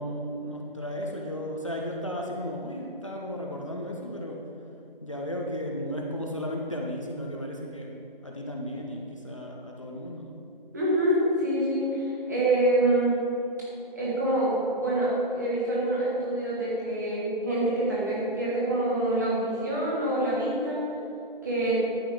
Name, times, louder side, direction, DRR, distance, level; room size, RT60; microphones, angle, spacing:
voice 1, 0.0-4.4 5.0-7.9 8.2-10.3, equal, 35° left, -1 dB, 0.8 m, -34 dB
voice 2, 10.7-13.1 14.0-20.8 21.4-21.8, right 1 dB, 20° right, -7 dB, 1.8 m, -26 dB
12.0 x 8.2 x 3.7 m, 2.9 s
figure-of-eight pair, 170°, 29 cm